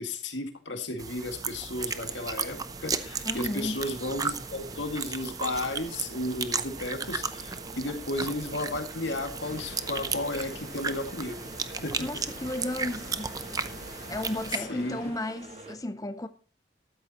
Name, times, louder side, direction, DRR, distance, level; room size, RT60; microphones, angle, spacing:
voice 1, 0.0-11.5 11.8-12.0 14.5-15.0, left 2 dB, 75° left, 2.1 m, -34 dB
sound 1, 1.0-14.6, right 5 dB, 20° right, 0.7 m, -35 dB
sound 2, 1.8-15.8, right 2 dB, 35° right, 1.8 m, -47 dB
voice 2, 3.2-3.8 12.0-13.4 14.1-16.3, left 1 dB, 20° left, 0.6 m, -34 dB
sound 3, 9.4-15.1, left 2 dB, 55° left, 5.2 m, -47 dB
13.5 x 13.0 x 3.0 m
head